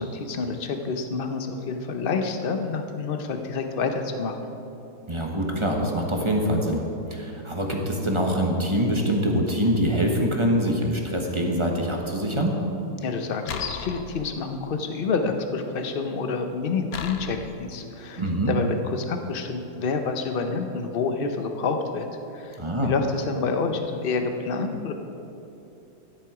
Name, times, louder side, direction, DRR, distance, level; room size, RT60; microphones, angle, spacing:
voice 1, 0.0-4.5 13.0-22.1 22.3-24.9, left 4 dB, 45° left, 6 dB, 0.8 m, -28 dB
voice 2, 5.1-6.8 7.1-12.6 18.2-18.5 22.6-22.9, equal, 20° right, 0 dB, 1.0 m, -24 dB
sound 1, 13.5-14.7 16.9-17.7, left 6 dB, 65° left, 1.1 m, -36 dB
13.0 x 10.5 x 4.9 m, 2.9 s
omnidirectional pair, 1.8 m